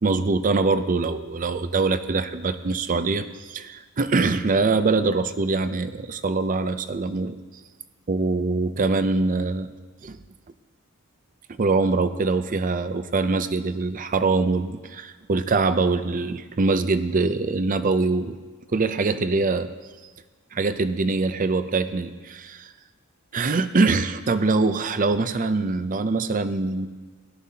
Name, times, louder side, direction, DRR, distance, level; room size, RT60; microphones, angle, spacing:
voice 1, 0.0-7.4 8.1-9.7 10.0-10.2 11.6-18.4 18.7-19.7 20.5-22.7 23.3-26.9, right 3 dB, 35° right, 11 dB, 0.5 m, -23 dB
17.0 x 12.5 x 2.8 m, 1.4 s
head